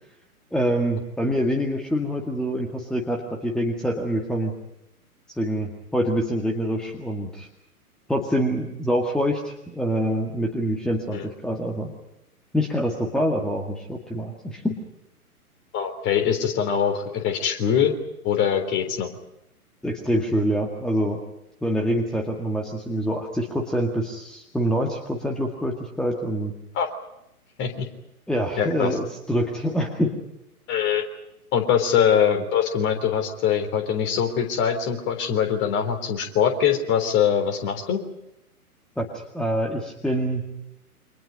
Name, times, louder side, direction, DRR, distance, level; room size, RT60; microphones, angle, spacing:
voice 1, 0.5-4.5 5.3-7.5 8.1-12.0 12.5-14.8 19.8-21.2 21.6-26.5 28.3-30.2 39.0-40.5, equal, ahead, 1 dB, 2.0 m, -25 dB
voice 2, 15.7-17.9 18.2-19.1 26.7-26.9 27.6-27.9 28.6-28.9 30.7-31.0 31.5-38.0, left 8 dB, 25° left, 5 dB, 3.6 m, -23 dB
29.5 x 25.5 x 5.4 m, 0.84 s
figure-of-eight pair, 120°, 45 cm